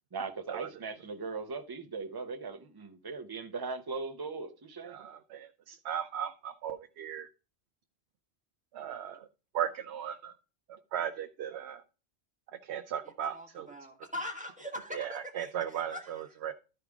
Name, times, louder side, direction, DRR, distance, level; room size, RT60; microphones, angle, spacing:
voice 1, 0.1-5.0, right 4 dB, 25° right, 0.7 m, -39 dB
voice 2, 4.9-7.3 8.7-9.3 9.5-10.4 10.9-11.8 12.6-13.7 14.9-16.5, right 9 dB, 75° right, 0.9 m, -37 dB
voice 3, 13.3-16.2, left 1 dB, 5° right, 1.3 m, -42 dB
12.5 x 4.9 x 3.6 m
omnidirectional pair, 1.1 m